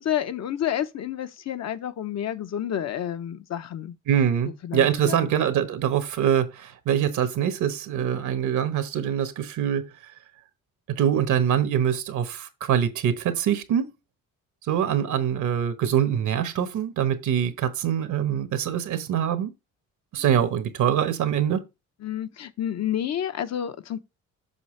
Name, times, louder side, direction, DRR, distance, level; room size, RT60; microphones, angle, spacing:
voice 1, 0.0-3.9 4.4-5.3 7.9-8.1 20.3-20.5 22.0-24.0, left 10 dB, 60° left, 0.9 m, -30 dB
voice 2, 4.1-9.9 10.9-13.9 14.7-19.5 20.1-21.6, right 9 dB, 75° right, 1.2 m, -24 dB
7.0 x 5.7 x 3.2 m
cardioid pair, 90°, 30 cm